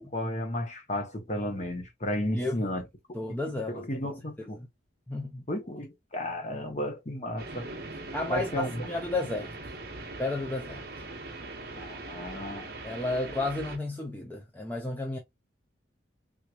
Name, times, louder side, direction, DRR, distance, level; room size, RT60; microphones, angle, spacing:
voice 1, 0.0-2.9 3.3-3.4 3.7-4.6 5.5-7.7 8.3-8.9 11.7-12.7, left 1 dB, 35° left, 0.9 m, -33 dB
voice 2, 3.1-3.8 5.1-5.5 8.1-9.8 10.2-10.9 12.8-15.2, left 2 dB, 10° left, 0.5 m, -32 dB
sound 1, 7.4-13.8, right 2 dB, 50° right, 1.0 m, -41 dB
3.6 x 3.0 x 2.2 m
head